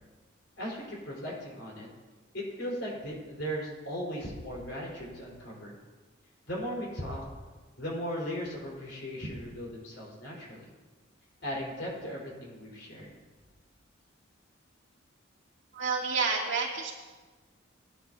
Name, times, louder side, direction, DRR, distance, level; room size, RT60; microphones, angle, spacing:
voice 1, 0.6-1.9 2.3-5.7 6.5-7.3 7.8-10.7 11.4-13.1, equal, 60° left, -4 dB, 4.6 m, -37 dB
voice 2, 15.7-16.9, right 4 dB, 65° right, -3 dB, 2.7 m, -29 dB
20.0 x 10.0 x 2.8 m, 1.3 s
head